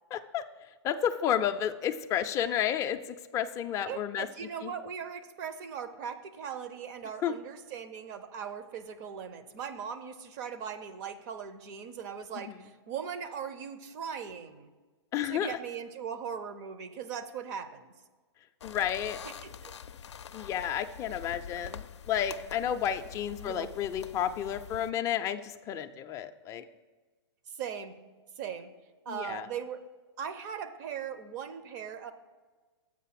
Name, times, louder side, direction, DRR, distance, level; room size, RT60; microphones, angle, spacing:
voice 1, 0.1-0.4 0.8-4.3 4.6-4.7 7.2-7.4 12.3-12.6 15.1-15.6 18.6-19.2 20.3-26.6 29.1-29.5, left 9 dB, 20° left, 7 dB, 0.4 m, -31 dB
voice 2, 3.9-14.7 15.2-17.9 19.2-19.8 23.4-23.7 27.5-28.0 28.4-28.7 29.1-29.8 30.2-32.1, right 7 dB, 40° right, 10 dB, 0.7 m, -39 dB
sound 1, 18.6-24.9, left 8 dB, 85° left, 0.5 m, -46 dB
7.5 x 5.4 x 5.8 m, 1.3 s
hypercardioid pair, 130°, 14 cm